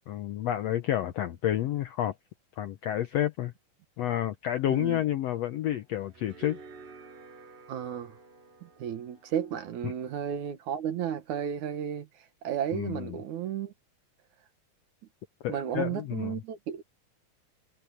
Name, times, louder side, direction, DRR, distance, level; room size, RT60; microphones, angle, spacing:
voice 1, 0.1-2.1 2.6-3.5 4.0-6.6 9.8-9.9 12.7-13.2 15.4-16.4, left 12 dB, 75° left, 1.5 m, -30 dB
voice 2, 4.7-5.0 7.7-8.2 8.6-13.7 15.5-16.8, right 9 dB, 65° right, 2.7 m, -33 dB
sound 1, 4.9-10.5, right 4 dB, 90° right, 6.7 m, -52 dB
omnidirectional pair, 3.8 m